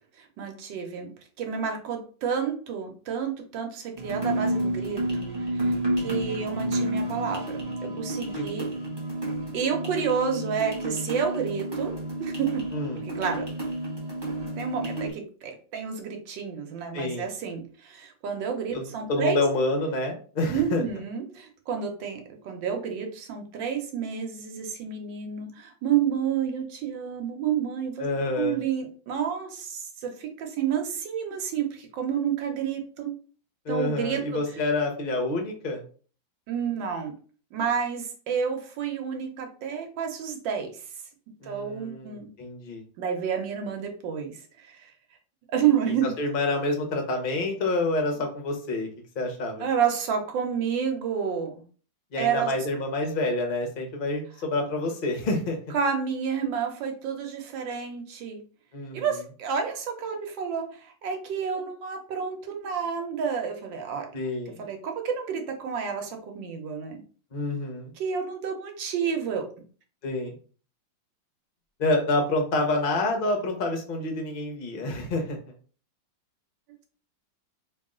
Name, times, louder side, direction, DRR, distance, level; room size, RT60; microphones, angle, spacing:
voice 1, 0.2-1.1 1.4-5.0 5.4-8.7 9.5-11.9 12.2-12.6 13.0-13.4 14.6-19.4 20.5-28.1 28.3-33.1 33.7-34.4 36.5-37.1 37.5-40.8 41.4-42.3 43.0-44.9 45.5-46.1 49.6-51.6 52.2-52.5 55.7-58.4 58.9-64.1 64.6-67.0 68.0-69.5, right 7 dB, 80° right, 4 dB, 1.5 m, -30 dB
sound 1, 4.0-15.1, right 1 dB, 35° right, 0.3 m, -30 dB
voice 2, 5.9-6.4 8.3-8.5 12.7-13.0 16.9-17.3 18.7-20.8 28.0-28.6 33.6-35.8 41.4-42.8 46.2-48.9 49.2-49.7 52.1-55.6 58.7-59.1 64.1-64.6 67.3-67.9 70.0-70.4 71.8-75.4, left 2 dB, 60° left, 3 dB, 0.5 m, -28 dB
3.4 x 2.3 x 3.6 m, 0.41 s
omnidirectional pair, 2.0 m